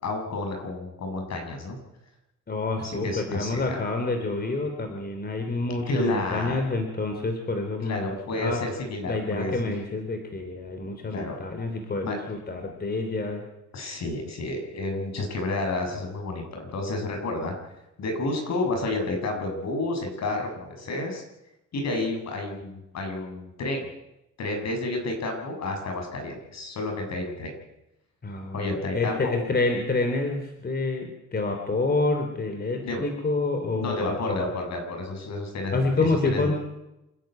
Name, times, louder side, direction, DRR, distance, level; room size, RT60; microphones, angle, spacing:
voice 1, 0.0-1.8 2.8-3.8 5.9-6.8 7.8-9.7 11.1-11.3 12.0-12.2 13.7-17.5 18.0-21.2 21.7-23.9 24.4-27.5 28.5-29.4 32.8-33.0 33.7-35.8 36.2-36.6, left 2 dB, 60° left, 3 dB, 7.3 m, -30 dB
voice 2, 2.5-8.6 9.1-13.4 28.2-34.5 35.7-36.6, left 3 dB, 30° left, 4 dB, 3.9 m, -28 dB
27.5 x 11.0 x 9.4 m, 0.90 s
cardioid pair, 90°, 30 cm